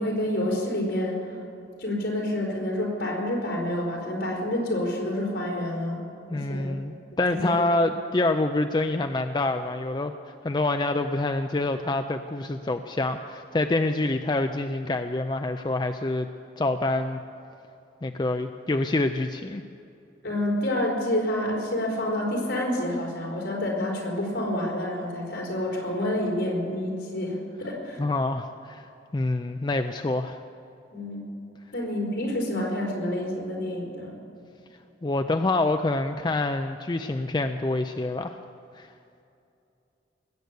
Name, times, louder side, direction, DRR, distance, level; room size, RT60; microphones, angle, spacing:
voice 1, 0.0-1.4 1.8-6.0 6.3-6.7 7.3-7.6 20.2-28.0 30.9-31.3 31.7-34.2, left 1 dB, 70° left, -3 dB, 4.6 m, -28 dB
voice 2, 6.3-10.1 10.4-16.3 16.6-17.2 18.0-19.6 28.0-28.9 29.1-30.4 35.0-38.4 38.8-38.9, left 2 dB, 25° left, 7 dB, 0.4 m, -26 dB
20.0 x 8.1 x 8.2 m, 2.7 s
head